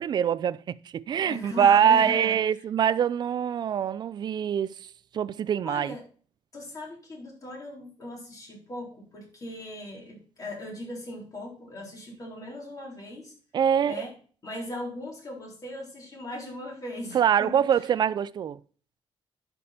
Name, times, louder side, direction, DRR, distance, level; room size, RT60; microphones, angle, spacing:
voice 1, 0.0-4.9 5.1-5.9 13.5-14.0 17.1-18.6, right 8 dB, 45° right, 0.4 m, -24 dB
voice 2, 1.3-2.6 5.6-6.0 6.5-13.3 13.8-14.1 14.4-17.9, left 1 dB, 35° left, 3.9 m, -39 dB
11.0 x 5.4 x 4.2 m
cardioid pair, 125°, 10 cm